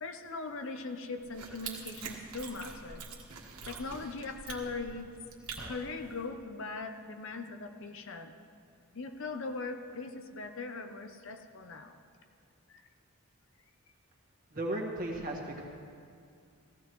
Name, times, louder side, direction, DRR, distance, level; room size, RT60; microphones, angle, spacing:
voice 1, 0.0-3.0 3.7-5.1 5.6-8.4 8.9-12.0 12.7-12.8, left 3 dB, 60° left, 6 dB, 0.7 m, -40 dB
sound 1, 1.2-6.2, right 5 dB, 80° right, 1.6 m, -45 dB
voice 2, 14.5-15.6, right 1 dB, 40° right, -2 dB, 1.7 m, -35 dB
16.5 x 15.0 x 3.1 m, 2.3 s
head